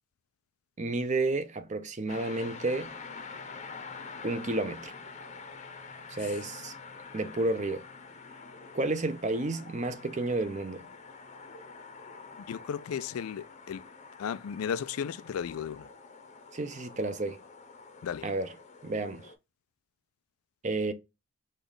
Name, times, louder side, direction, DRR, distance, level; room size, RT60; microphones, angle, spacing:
voice 1, 0.8-2.9 4.2-4.9 6.1-6.7 7.1-7.8 8.7-10.9 16.5-17.4 18.2-18.5 18.8-19.3 20.6-20.9, right 2 dB, 35° right, 0.5 m, -31 dB
sound 1, 2.1-19.3, left 4 dB, 30° left, 0.7 m, -47 dB
voice 2, 12.5-13.8 14.2-15.9 18.0-18.2, left 7 dB, 80° left, 0.4 m, -34 dB
5.2 x 2.4 x 3.9 m
head